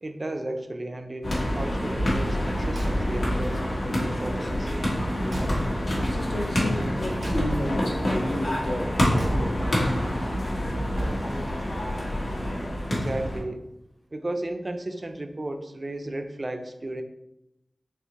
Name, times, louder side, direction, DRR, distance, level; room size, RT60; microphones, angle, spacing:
voice 1, 0.0-4.7 12.9-13.7 14.1-17.0, right 1 dB, 40° right, 6 dB, 0.4 m, -34 dB
sound 1, 1.2-13.4, equal, 70° left, 1.2 m, -27 dB
Car / Truck / Slam, 2.7-3.4 4.7-6.1 7.2-8.0 9.2-9.8 10.9-11.6, right 1 dB, 85° right, 0.6 m, -33 dB
voice 2, 5.9-9.9, left 1 dB, 50° left, 3 dB, 0.5 m, -33 dB
4.4 x 2.9 x 2.9 m, 0.88 s
wide cardioid pair, 75°, 0 cm